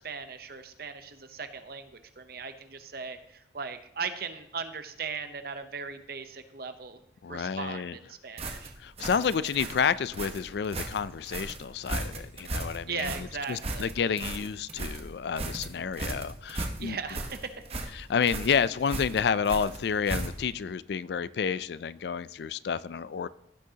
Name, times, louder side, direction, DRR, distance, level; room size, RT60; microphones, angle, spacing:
voice 1, 0.0-7.0 7.3-8.7 12.9-13.9 16.8-17.5, right 5 dB, 55° right, 0.8 m, -38 dB
voice 2, 7.2-7.9 8.8-17.0 18.0-23.3, left 6 dB, 65° left, 0.3 m, -30 dB
sound 1, 8.4-20.6, right 2 dB, 35° right, 1.1 m, -36 dB
16.0 x 6.3 x 2.9 m
head